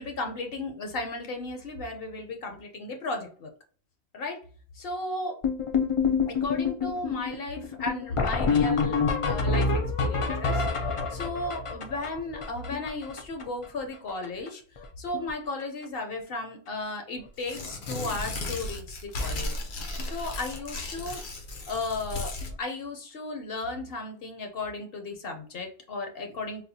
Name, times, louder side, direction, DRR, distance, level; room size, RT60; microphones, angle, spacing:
voice 1, 0.0-3.5 4.1-4.4 4.7-5.4 6.2-9.0 9.3-14.6 15.0-19.6 20.0-21.2 21.7-26.7, left 2 dB, 65° left, 4 dB, 0.9 m, -35 dB
sound 1, 5.4-13.6 13.9-14.0 14.2-14.5 14.8-15.3 15.6-15.8 16.7-16.8 17.2-17.3 17.6-17.7 20.0-20.1 22.4-22.5, left 4 dB, 50° left, 0.4 m, -27 dB
Tearing, 17.4-22.5, left 2 dB, 80° left, 1.1 m, -35 dB
4.2 x 2.1 x 2.7 m, 0.42 s
omnidirectional pair, 1.1 m